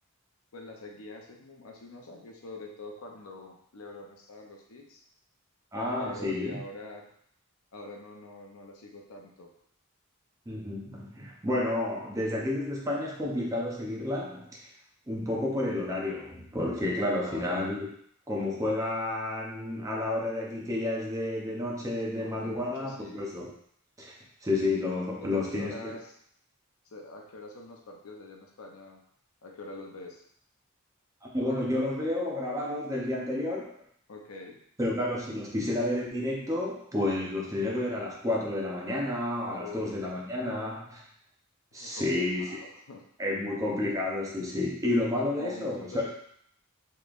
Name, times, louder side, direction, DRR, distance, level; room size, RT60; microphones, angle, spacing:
voice 1, 0.5-5.0 6.0-7.1 7.7-9.5 17.2-17.6 22.1-23.2 25.2-26.2 26.9-29.0 29.4-30.2 34.1-34.6 39.6-40.0 41.8-43.0 45.3-46.1, left 2 dB, 75° left, 1 dB, 0.6 m, -44 dB
voice 2, 5.7-6.6 10.5-14.7 15.1-17.9 18.3-23.5 24.0-24.2 24.4-26.0 31.3-33.7 34.8-41.0 41.7-42.5 43.2-46.0, left 1 dB, 15° right, -3 dB, 0.6 m, -30 dB
3.7 x 3.1 x 2.5 m, 0.66 s
head